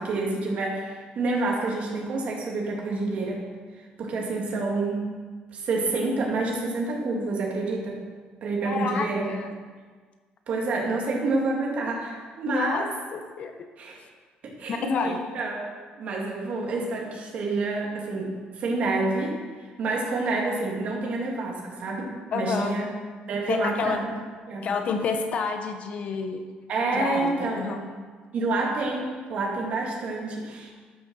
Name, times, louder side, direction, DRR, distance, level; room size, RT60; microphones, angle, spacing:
voice 1, 0.0-3.5 4.0-5.1 5.5-8.0 8.4-9.3 10.5-12.9 13.8-14.0 14.4-15.6 15.9-19.4 19.8-22.9 23.3-24.1 24.5-24.7 26.7-27.9 28.3-30.7, right 3 dB, 45° right, -2 dB, 2.6 m, -28 dB
voice 2, 8.6-9.6 12.5-12.9 13.1-13.5 14.7-15.2 22.3-22.8 23.5-24.0 24.6-26.4 26.9-27.8, left 5 dB, 45° left, 6 dB, 1.0 m, -29 dB
12.0 x 6.7 x 6.4 m, 1.5 s
cardioid pair, 165°, 3 cm